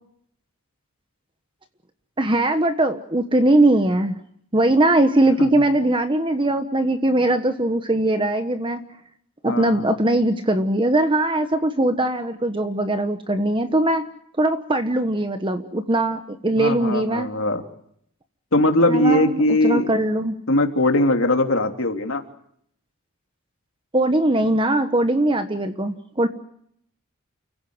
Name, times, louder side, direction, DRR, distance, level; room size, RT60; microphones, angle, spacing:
voice 1, 2.2-4.2 4.5-8.8 9.4-14.1 14.4-17.3 18.9-20.3 23.9-26.3, right 1 dB, 20° right, 8 dB, 1.2 m, -20 dB
voice 2, 9.4-9.9 16.6-17.6 18.5-19.9 20.5-22.2, left 1 dB, 60° left, 4 dB, 3.2 m, -20 dB
30.0 x 16.0 x 9.5 m, 0.70 s
head